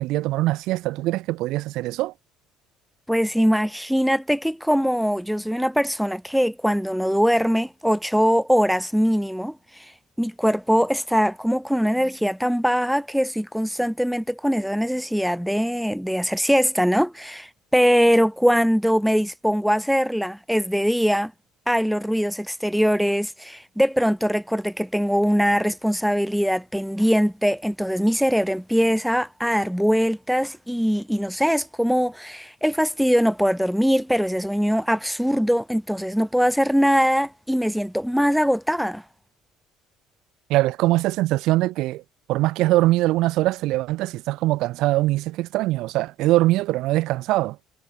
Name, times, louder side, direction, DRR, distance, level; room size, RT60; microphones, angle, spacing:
voice 1, 0.0-2.1 40.5-42.0 42.3-47.6, right 17 dB, 65° right, 4.0 m, -22 dB
voice 2, 3.1-9.9 10.2-21.3 21.7-39.0, equal, ahead, 2.6 m, -22 dB
cardioid pair, 140°, 0 cm